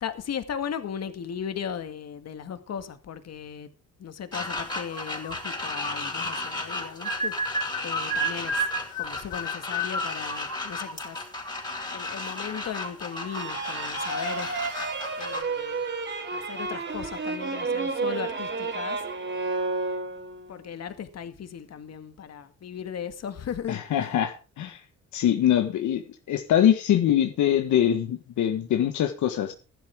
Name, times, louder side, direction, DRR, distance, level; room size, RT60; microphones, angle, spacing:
voice 1, 0.0-3.7 4.0-8.7 9.0-11.2 11.9-14.5 15.2-15.8 16.3-19.0 20.5-24.1, left 8 dB, 60° left, 2.0 m, -37 dB
sound 1, 4.3-15.4, left 1 dB, 15° left, 5.3 m, -32 dB
Screaming, 13.1-17.5, right 8 dB, 80° right, 5.9 m, -46 dB
sound 2, 13.3-20.5, right 3 dB, 40° right, 4.0 m, -31 dB
voice 2, 23.7-24.8 25.1-26.0 26.3-29.5, left 10 dB, 75° left, 1.5 m, -23 dB
15.0 x 11.5 x 3.6 m
cardioid pair, 90°, 30 cm